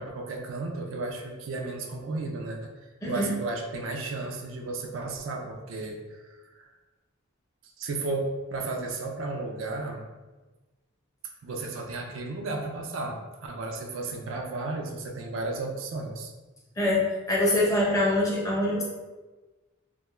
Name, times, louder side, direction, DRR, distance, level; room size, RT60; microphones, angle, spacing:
voice 1, 0.0-6.7 7.8-10.0 11.4-16.3, right 3 dB, 75° right, 2 dB, 0.4 m, -34 dB
voice 2, 3.0-3.3 16.8-17.0 17.3-18.8, left 1 dB, 15° left, -5 dB, 0.5 m, -24 dB
2.2 x 2.1 x 3.0 m, 1.2 s
head